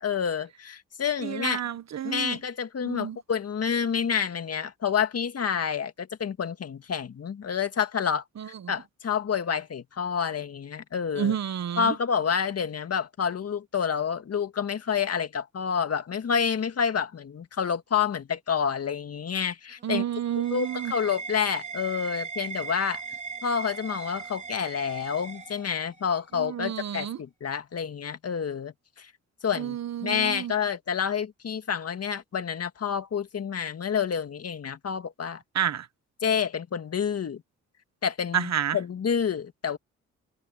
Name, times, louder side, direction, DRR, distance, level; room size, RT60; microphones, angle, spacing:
voice 1, 0.0-1.6 2.0-8.2 8.7-11.4 11.8-20.0 20.5-23.0 23.4-29.1 29.4-35.4 36.2-37.4 38.0-39.8, left 7 dB, 50° left, 2.0 m, -28 dB
voice 2, 1.2-2.4 2.8-3.2 8.4-8.7 11.2-11.9 19.8-20.9 26.3-27.2 29.6-30.5 35.5-35.9 38.3-38.8, right 9 dB, 60° right, 1.4 m, -30 dB
sound 1, 19.7-26.2, right 5 dB, 25° right, 3.4 m, -38 dB
supercardioid pair, 60°, 31 cm